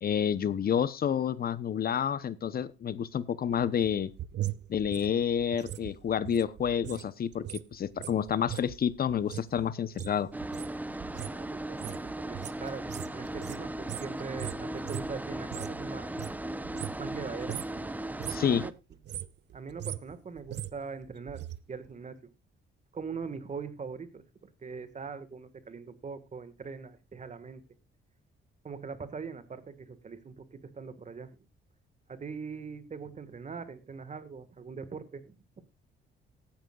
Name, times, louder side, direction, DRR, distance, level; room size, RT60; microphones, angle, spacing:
voice 1, 0.0-4.1 4.7-10.3 18.3-18.6, left 8 dB, 50° left, 16 dB, 0.9 m, -29 dB
sound 1, 3.5-7.1 7.3-15.8 16.1-17.2 17.4-17.8 18.1-18.5 18.9-21.6 21.9-22.0, right 12 dB, 60° right, 0.7 m, -40 dB
sound 2, 10.3-18.7, right 1 dB, 10° right, 0.8 m, -37 dB
voice 2, 11.2-16.2 17.0-18.0 18.4-18.7 19.5-22.3 22.9-27.6 28.6-31.5 32.1-35.6, right 5 dB, 35° right, 12 dB, 1.8 m, -42 dB
17.5 x 10.5 x 2.4 m, 0.26 s
cardioid pair, 90°, 20 cm